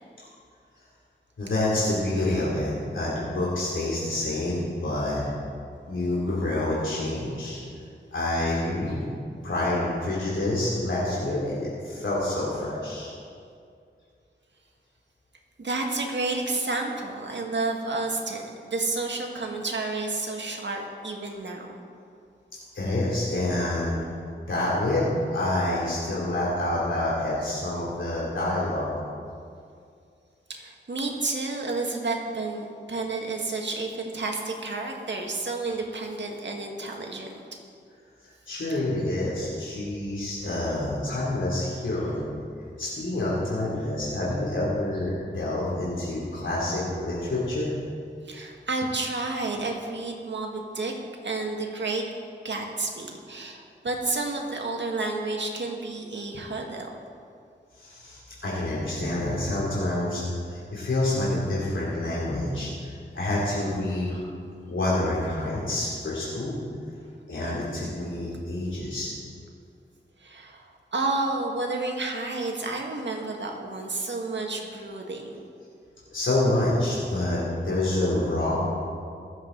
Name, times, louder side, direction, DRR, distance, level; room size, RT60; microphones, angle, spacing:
voice 1, 1.4-5.2 5.9-7.6 8.1-9.0 9.4-13.1 22.7-24.1 24.5-25.0 25.3-28.9 38.5-42.2 42.8-47.7 57.8-60.2 60.5-64.1 64.6-66.6 67.3-69.1 76.1-78.6, left 1 dB, 80° left, -8 dB, 3.0 m, -27 dB
voice 2, 15.6-21.7 30.5-37.4 48.2-50.9 51.2-52.0 52.4-56.9 64.1-64.4 70.2-75.4, right 3 dB, 65° right, 1 dB, 1.8 m, -31 dB
23.5 x 7.8 x 4.0 m, 2.3 s
cardioid pair, 55°, 20 cm